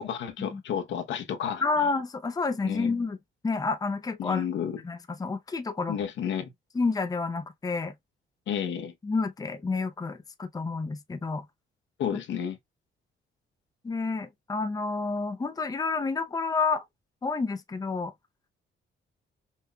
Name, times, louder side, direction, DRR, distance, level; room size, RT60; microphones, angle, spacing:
voice 1, 0.0-1.6 2.6-2.9 4.2-4.8 5.9-6.5 8.5-8.9 12.0-12.6, left 8 dB, 70° left, 0.8 m, -31 dB
voice 2, 1.6-3.2 3.4-4.4 4.8-6.0 6.7-7.9 9.0-11.4 13.8-16.8 17.2-18.1, left 4 dB, 20° left, 0.6 m, -29 dB
5.7 x 2.6 x 2.2 m
cardioid pair, 90°, 20 cm